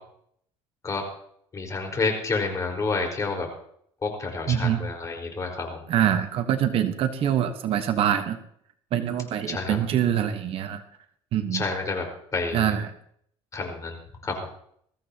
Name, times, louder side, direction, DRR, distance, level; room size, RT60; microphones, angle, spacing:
voice 1, 1.5-3.5 4.0-5.8 9.5-9.8 11.5-12.1 12.3-12.7 13.5-14.0 14.2-14.5, left 3 dB, 30° left, 2 dB, 4.7 m, -29 dB
voice 2, 4.5-4.8 5.9-8.4 8.9-10.8 11.3-11.6 12.5-12.9, right 10 dB, 55° right, 8 dB, 1.2 m, -24 dB
22.0 x 14.5 x 2.9 m, 0.67 s
cardioid pair, 125°, 12 cm